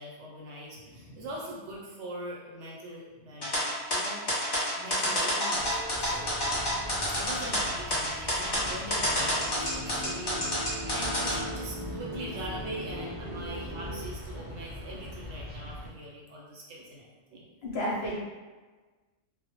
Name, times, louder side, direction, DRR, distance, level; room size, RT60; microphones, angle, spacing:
voice 1, 0.0-3.6 3.9-4.2 4.7-6.3 7.1-17.5, right 1 dB, 70° right, -4 dB, 0.8 m, -42 dB
voice 2, 0.9-1.2 17.6-18.2, equal, 65° left, -5 dB, 0.7 m, -33 dB
sound 1, 3.4-11.3, equal, 40° left, 0.3 m, -28 dB
sound 2, 5.6-7.7 8.6-14.0, left 1 dB, 20° right, 0.8 m, -42 dB
sound 3, 5.9-15.9, equal, 45° right, 0.4 m, -42 dB
2.1 x 2.0 x 2.8 m, 1.3 s
omnidirectional pair, 1.3 m